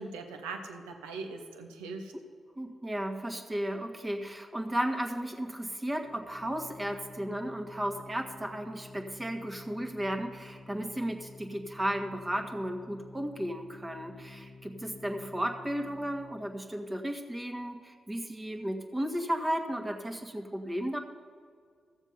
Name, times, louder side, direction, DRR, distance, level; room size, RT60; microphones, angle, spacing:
voice 1, 0.0-2.1, right 3 dB, 90° right, 5 dB, 0.8 m, -40 dB
voice 2, 2.6-21.0, equal, 20° right, 4 dB, 1.6 m, -34 dB
Organ, 5.9-16.6, left 3 dB, 50° left, 1.0 m, -50 dB
14.0 x 7.2 x 5.5 m, 2.1 s
hypercardioid pair, 40°, 0 cm